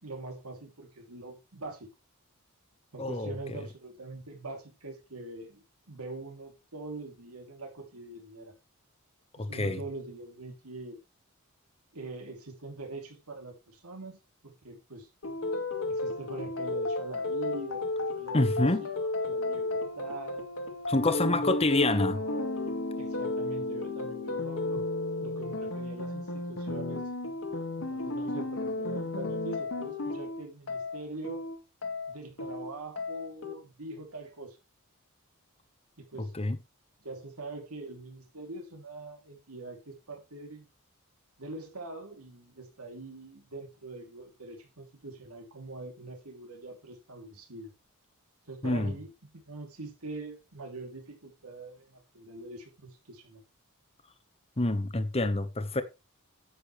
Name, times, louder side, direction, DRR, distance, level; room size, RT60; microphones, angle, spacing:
voice 1, 0.0-1.9 2.9-8.5 9.4-11.0 11.9-15.1 15.9-18.5 18.8-20.5 21.3-22.7 23.0-24.8 25.2-27.1 27.8-31.5 32.1-34.6 36.0-36.3 37.0-40.7 41.4-47.7 48.5-53.4, right 2 dB, 85° right, 2.9 m, -43 dB
voice 2, 3.0-3.6 9.4-9.8 18.3-18.8 20.9-22.2 36.3-36.6 48.6-49.0 54.6-55.8, left 2 dB, 25° left, 1.0 m, -27 dB
sound 1, 15.2-33.5, left 2 dB, 65° left, 1.9 m, -33 dB
10.0 x 8.3 x 3.2 m
head